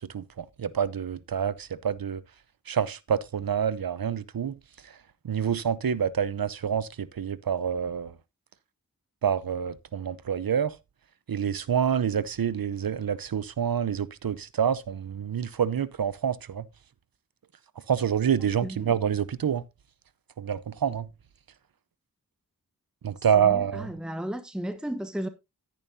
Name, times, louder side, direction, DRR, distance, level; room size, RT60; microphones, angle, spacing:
voice 1, 0.1-2.2 2.7-4.6 4.8-4.9 5.2-8.2 9.2-10.7 11.3-16.6 17.9-19.6 20.4-21.1 23.0-23.9, right 8 dB, 75° right, 0.8 m, -27 dB
voice 2, 18.6-19.0 23.4-25.3, right 1 dB, ahead, 1.2 m, -34 dB
11.0 x 10.5 x 2.7 m
wide cardioid pair, 50°, 35 cm